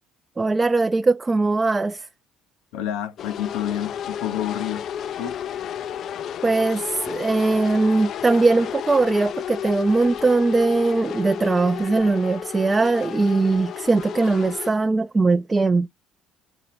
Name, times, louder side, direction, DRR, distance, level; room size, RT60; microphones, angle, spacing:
voice 1, 0.4-2.1 6.4-15.9, right 3 dB, 25° right, 0.4 m, -20 dB
voice 2, 2.7-4.9 5.2-5.4, left 11 dB, 85° left, 0.8 m, -29 dB
sound 1, 3.2-14.7, left 9 dB, 60° left, 0.4 m, -32 dB
7.8 x 3.0 x 4.2 m
supercardioid pair, 75°, 0 cm